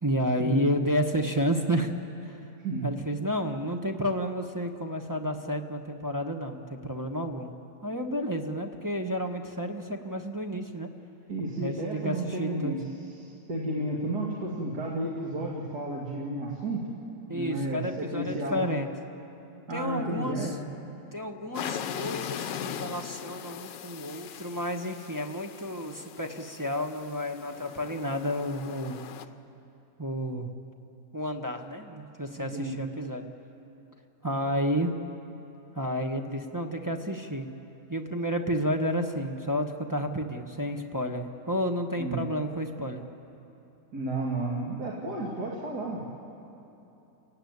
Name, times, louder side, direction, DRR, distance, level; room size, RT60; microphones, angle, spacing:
voice 1, 0.0-1.9 2.2-2.4 2.8-7.5 7.8-10.9 11.6-12.7 17.3-18.9 19.7-20.6 21.1-29.0 30.0-30.5 31.1-33.3 34.2-34.9 35.7-37.5 37.9-43.0, equal, 15° right, 2 dB, 0.9 m, -31 dB
voice 2, 11.3-12.8 13.2-16.9 17.3-18.7 19.7-20.6 32.4-32.9 42.0-42.2 43.9-46.0, right 2 dB, 65° right, -3 dB, 2.8 m, -32 dB
sound 1, 21.5-29.3, left 9 dB, 90° left, 1.5 m, -39 dB
29.5 x 16.0 x 9.5 m, 2.9 s
omnidirectional pair, 1.9 m